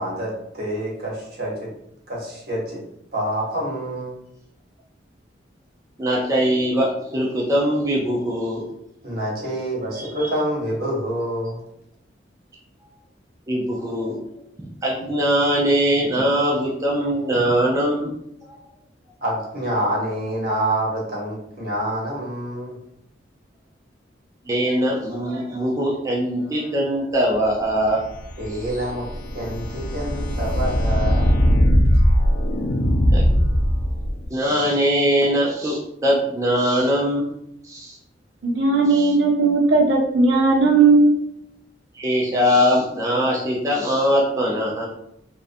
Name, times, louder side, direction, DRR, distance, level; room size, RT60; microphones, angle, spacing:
voice 1, 0.0-1.7 2.1-2.8 3.1-4.2 9.0-11.6 19.2-22.8 28.4-31.4, right 1 dB, 55° right, -4 dB, 0.9 m, -27 dB
voice 2, 6.0-8.6 9.9-10.3 13.5-14.2 14.6-18.1 24.5-28.0 33.1-33.4 34.3-37.3 37.6-38.0 38.9-39.1 41.9-44.9, equal, 20° right, -4 dB, 0.4 m, -21 dB
sound 1, 27.9-34.3, equal, 65° left, 0.4 m, -20 dB
voice 3, 38.4-41.1, right 3 dB, 80° right, -1 dB, 0.5 m, -16 dB
2.4 x 2.1 x 2.5 m, 0.76 s
head